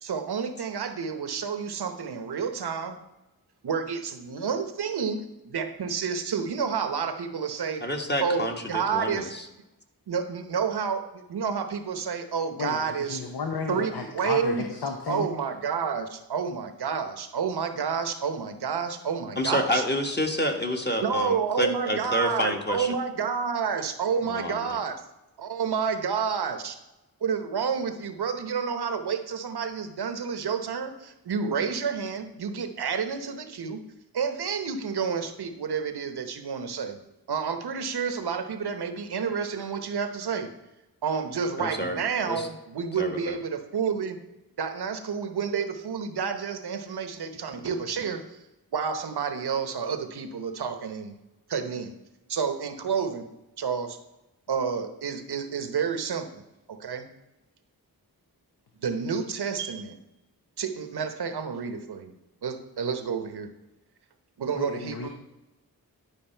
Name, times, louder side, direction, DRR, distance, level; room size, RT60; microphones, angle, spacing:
voice 1, 0.0-3.0 3.6-7.8 8.2-9.3 10.1-13.2 13.7-14.7 15.1-19.8 21.0-25.0 25.4-26.8 27.2-33.8 34.1-37.0 37.3-40.5 41.0-44.2 44.6-48.4 48.7-51.1 51.5-51.9 52.3-53.3 53.6-54.0 54.5-56.4 56.7-57.1 58.8-60.0 60.6-62.1 62.4-63.5 64.4-65.1, right 6 dB, 85° right, 8 dB, 0.9 m, -29 dB
voice 2, 7.8-9.4 19.4-22.9 24.3-24.8 41.6-42.0 42.3-42.5 43.0-43.3, equal, 25° left, 3 dB, 1.5 m, -28 dB
voice 3, 12.6-15.3 64.5-65.1, left 5 dB, 85° left, 3 dB, 0.9 m, -33 dB
11.0 x 5.0 x 4.4 m, 0.98 s
cardioid pair, 40°, 38 cm